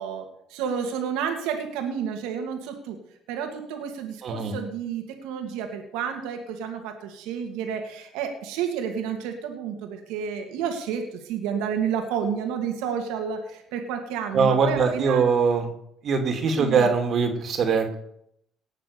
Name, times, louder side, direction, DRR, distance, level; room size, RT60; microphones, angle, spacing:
voice 1, 0.0-3.0 3.3-15.3 16.5-16.9, right 7 dB, 85° right, 4 dB, 2.4 m, -30 dB
voice 2, 4.2-4.6 14.3-15.7 16.0-18.0, right 5 dB, 55° right, 4 dB, 2.8 m, -22 dB
19.0 x 6.8 x 6.9 m, 0.74 s
supercardioid pair, 80°, 0 cm